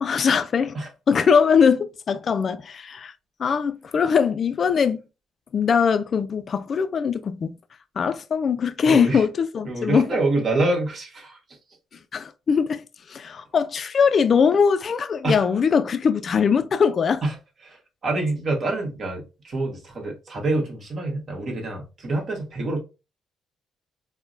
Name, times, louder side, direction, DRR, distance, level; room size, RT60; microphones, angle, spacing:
voice 1, 0.0-0.8 1.1-3.1 3.4-5.0 5.5-7.5 8.0-10.1 12.1-17.2, left 6 dB, 50° left, 0.4 m, -21 dB
voice 2, 8.8-9.2 9.6-11.6 15.2-15.4 17.2-17.4 17.6-22.8, right 2 dB, 50° right, 1.3 m, -26 dB
4.4 x 2.1 x 2.5 m
cardioid pair, 90°, 0 cm